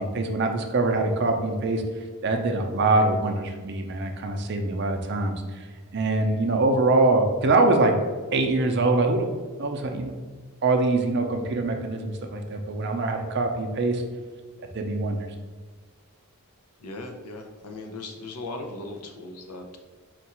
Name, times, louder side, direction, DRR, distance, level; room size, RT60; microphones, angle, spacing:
voice 1, 0.0-1.8 2.2-5.7 5.9-8.0 8.3-9.3 9.6-10.2 10.6-14.0 14.7-15.2, right 2 dB, 50° right, 4 dB, 0.5 m, -23 dB
voice 2, 16.8-19.8, left 2 dB, 90° left, 3 dB, 0.7 m, -38 dB
4.4 x 2.4 x 4.2 m, 1.4 s
head